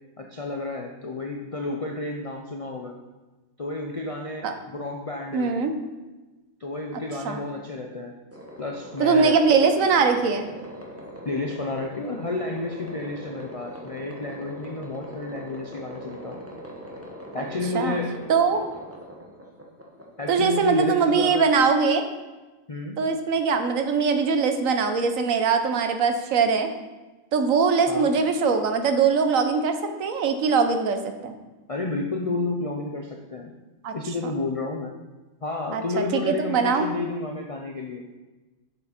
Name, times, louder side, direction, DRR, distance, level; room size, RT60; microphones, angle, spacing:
voice 1, 0.2-2.9 3.6-5.6 6.6-8.1 8.6-9.4 11.2-16.4 17.3-18.2 20.2-21.6 22.7-23.0 27.9-28.1 31.7-33.5 33.9-34.9 35.4-38.1, left 2 dB, 50° left, 1 dB, 0.4 m, -31 dB
voice 2, 5.3-5.7 7.2-7.4 9.0-10.5 17.7-18.0 18.3-18.6 20.3-22.0 23.0-26.7 27.3-31.3 33.8-33.9 35.7-36.9, right 5 dB, 70° right, 7 dB, 1.2 m, -22 dB
sound 1, 8.3-20.9, equal, 10° right, 1.1 m, -41 dB
6.8 x 6.7 x 4.3 m, 1.2 s
omnidirectional pair, 1.5 m